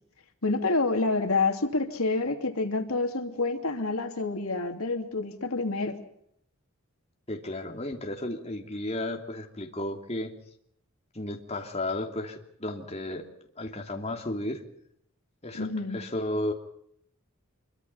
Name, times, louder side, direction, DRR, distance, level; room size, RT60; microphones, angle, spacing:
voice 1, 0.4-6.0 15.5-16.0, left 3 dB, 80° left, 6 dB, 2.8 m, -28 dB
voice 2, 7.3-10.3 11.1-13.2 13.5-14.6 15.4-16.5, left 1 dB, 30° left, 2 dB, 2.9 m, -33 dB
26.0 x 24.0 x 5.7 m, 0.70 s
head